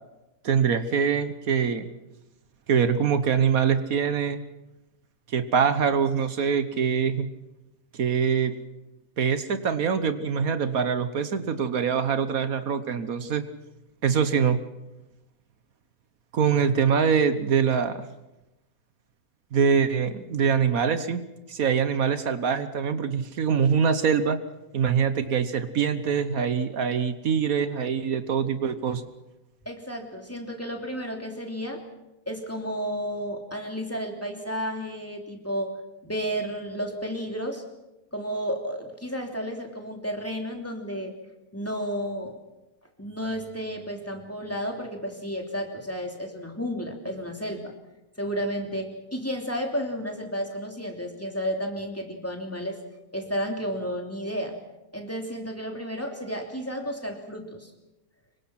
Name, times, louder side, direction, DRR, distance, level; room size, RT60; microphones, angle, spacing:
voice 1, 0.4-1.9 2.7-4.4 5.3-7.3 8.0-8.5 9.2-13.4 14.0-14.6 16.3-18.0 19.5-21.2 21.5-24.4 24.7-29.0, right 6 dB, 75° right, 11 dB, 1.5 m, -24 dB
voice 2, 29.6-31.8 32.3-35.8 36.0-37.6 38.1-41.1 41.5-42.3 43.0-47.7 48.2-52.8 53.1-54.6 54.9-57.7, equal, 10° left, 2 dB, 3.0 m, -32 dB
26.0 x 23.5 x 5.9 m, 0.99 s
omnidirectional pair, 1.5 m